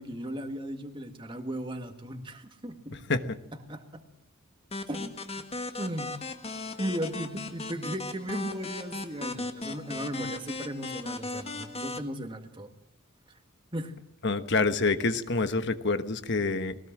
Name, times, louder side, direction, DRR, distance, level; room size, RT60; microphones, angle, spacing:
voice 1, 0.0-3.0 3.7-4.0 4.9-5.1 5.8-6.1 6.5-12.7 13.3-13.4 13.7-14.0, equal, 25° right, 5 dB, 1.8 m, -36 dB
sound 1, 4.7-12.0, left 3 dB, 30° left, 1.4 m, -37 dB
voice 2, 14.2-16.8, left 3 dB, 55° left, 10 dB, 1.2 m, -27 dB
21.0 x 18.5 x 7.5 m, 0.76 s
head